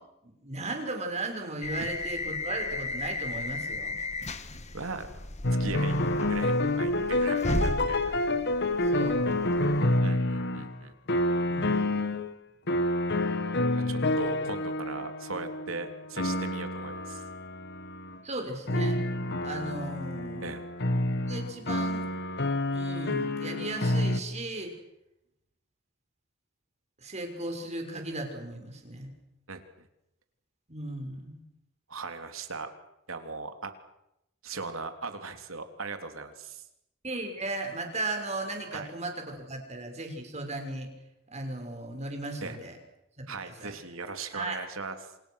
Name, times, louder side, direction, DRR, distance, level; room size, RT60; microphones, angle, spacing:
voice 1, 0.2-4.0 7.5-7.9 8.9-9.3 11.5-12.0 18.2-19.0 19.4-20.6 21.3-22.1 22.7-24.7 27.0-29.1 30.7-31.4 37.0-40.9 41.3-42.8 43.2-43.7 44.3-44.6, right 2 dB, 35° right, 4 dB, 6.2 m, -36 dB
sound 1, 1.6-10.0, left 2 dB, 35° left, 1.7 m, -35 dB
voice 2, 4.7-5.1 5.6-8.2 10.0-10.9 13.9-17.2 20.4-20.6 29.5-29.9 31.9-32.7 33.1-33.7 34.4-36.6 38.7-38.9 42.4-42.6 43.3-45.0, right 3 dB, 80° right, 7 dB, 3.4 m, -38 dB
sound 2, 5.4-10.8 11.1-12.3 12.7-18.2 18.7-24.2, left 1 dB, 55° left, 1.8 m, -28 dB
28.5 x 27.5 x 6.5 m, 0.84 s
head